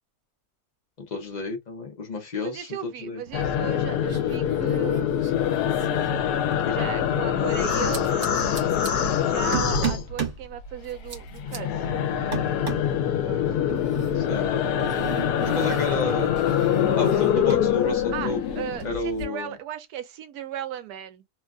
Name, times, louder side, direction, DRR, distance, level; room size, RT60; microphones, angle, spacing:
voice 1, 1.0-3.2 6.7-6.9 14.1-14.5 15.4-16.3 17.0-18.4 18.8-19.6, left 3 dB, 55° left, 0.4 m, -30 dB
voice 2, 2.4-5.5 6.7-11.8 12.8-14.5 15.8-16.0 17.1-17.3 18.1-21.2, right 10 dB, 80° right, 1.1 m, -37 dB
sound 1, 3.3-10.7 10.9-19.0, left 9 dB, 85° left, 1.1 m, -24 dB
sound 2, 3.3-3.8 4.1-6.7 7.7-8.9 9.5-10.4 10.8-11.6 12.3-13.0 13.7-17.7 18.0-19.2, right 7 dB, 50° right, 1.4 m, -36 dB
2.9 x 2.3 x 2.3 m
omnidirectional pair, 1.6 m